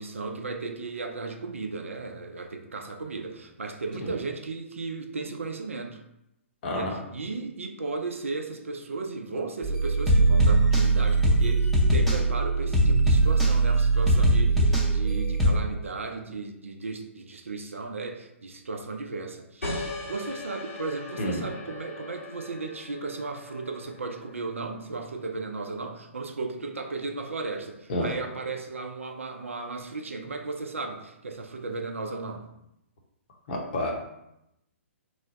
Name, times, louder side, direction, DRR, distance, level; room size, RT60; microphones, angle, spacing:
voice 1, 0.0-6.0 6.7-19.7 20.1-32.5, right 3 dB, 75° right, 4 dB, 0.5 m, -35 dB
voice 2, 6.6-6.9 21.2-21.4 27.9-28.1 33.5-33.9, left 1 dB, 45° left, 0 dB, 0.8 m, -29 dB
sound 1, 9.6-15.5, right 2 dB, 5° left, 0.6 m, -21 dB
sound 2, 19.6-24.8, left 2 dB, 80° left, 1.4 m, -39 dB
3.1 x 2.2 x 3.8 m, 0.84 s
figure-of-eight pair, 125°, 7 cm